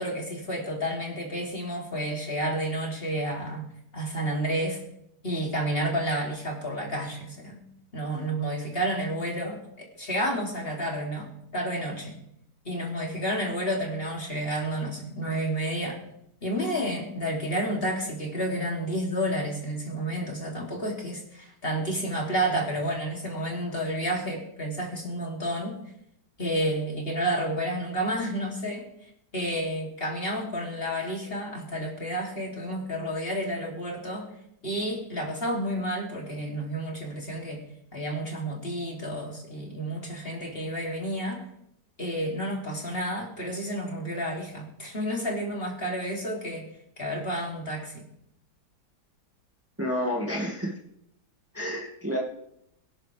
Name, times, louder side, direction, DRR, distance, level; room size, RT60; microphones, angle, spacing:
voice 1, 0.0-3.7 3.9-4.8 5.2-7.6 7.9-11.3 11.5-12.1 12.6-16.0 16.4-25.8 26.4-28.9 29.3-34.3 34.6-37.6 37.9-41.4 42.0-46.6 47.0-48.0, right 1 dB, 35° left, -1 dB, 3.4 m, -30 dB
voice 2, 49.8-50.7 51.5-52.2, equal, 10° right, -3 dB, 2.2 m, -29 dB
23.5 x 11.0 x 3.5 m, 0.77 s
omnidirectional pair, 1.8 m